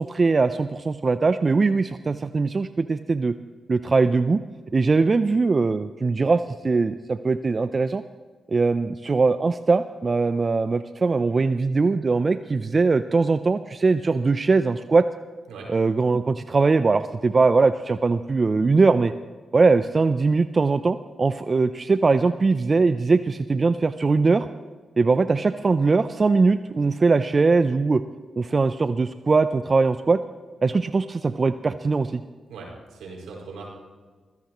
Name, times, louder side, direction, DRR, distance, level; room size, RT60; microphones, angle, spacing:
voice 1, 0.0-3.3 3.7-4.4 4.7-8.0 8.5-15.1 15.7-19.1 19.5-24.5 25.0-28.0 28.4-30.2 30.6-32.2, right 4 dB, 45° right, 12 dB, 0.5 m, -21 dB
voice 2, 32.5-33.7, right 4 dB, 85° right, -2 dB, 5.3 m, -39 dB
24.0 x 16.5 x 3.1 m, 1.4 s
supercardioid pair, 40°, 0 cm